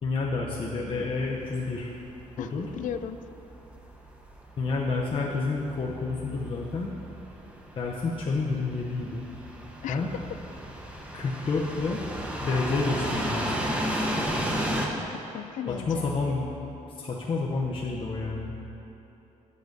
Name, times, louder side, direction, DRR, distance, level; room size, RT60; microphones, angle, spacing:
voice 1, 0.0-1.9 2.4-2.7 4.6-6.9 7.8-9.2 9.9-10.1 11.1-12.0 12.4-13.5 15.7-16.5 17.0-18.5, left 3 dB, 40° left, -3 dB, 0.7 m, -29 dB
sound 1, 1.1-14.9, equal, 10° right, 0.8 m, -34 dB
voice 2, 2.4-3.2 9.8-10.0 15.3-16.1, left 9 dB, 80° left, 11 dB, 0.4 m, -35 dB
8.5 x 4.9 x 6.7 m, 3.0 s
cardioid pair, 140°, 13 cm